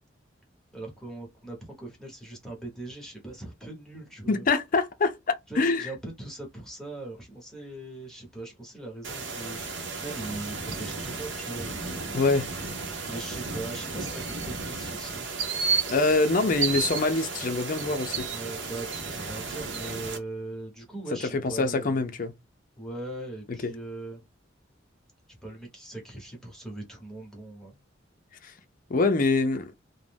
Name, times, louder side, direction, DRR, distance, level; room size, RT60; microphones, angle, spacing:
voice 1, 0.7-4.4 5.5-11.7 13.1-15.3 18.3-22.1 22.8-24.2 25.4-27.8, right 2 dB, 5° left, 0.9 m, -40 dB
voice 2, 4.3-5.9 12.1-12.5 15.9-18.3 21.3-22.3 23.5-23.7 28.4-28.5 28.9-29.7, left 3 dB, 45° left, 0.5 m, -25 dB
sound 1, 9.0-20.2, right 4 dB, 70° right, 0.7 m, -33 dB
2.5 x 2.1 x 3.3 m
head